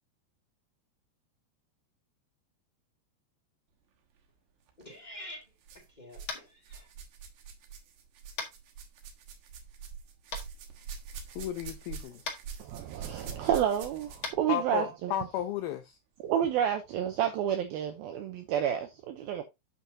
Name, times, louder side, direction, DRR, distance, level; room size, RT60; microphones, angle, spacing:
sound 1, 4.7-4.9 5.6-6.4 6.6-14.4 15.4-15.5 16.3-16.4, right 6 dB, 60° right, 2.2 m, -45 dB
voice 1, 4.8-5.4 5.9-6.9 19.2-19.4, equal, 20° left, 1.3 m, -47 dB
Tap, 6.2-6.5 8.4-8.5 10.3-10.4 12.2-12.4 14.2-14.3, left 4 dB, 50° left, 1.5 m, -36 dB
voice 2, 11.4-12.2 14.5-16.0, left 10 dB, 85° left, 2.1 m, -33 dB
voice 3, 12.6-15.1 16.2-19.4, right 10 dB, 85° right, 2.1 m, -30 dB
8.7 x 7.1 x 2.8 m
omnidirectional pair, 5.2 m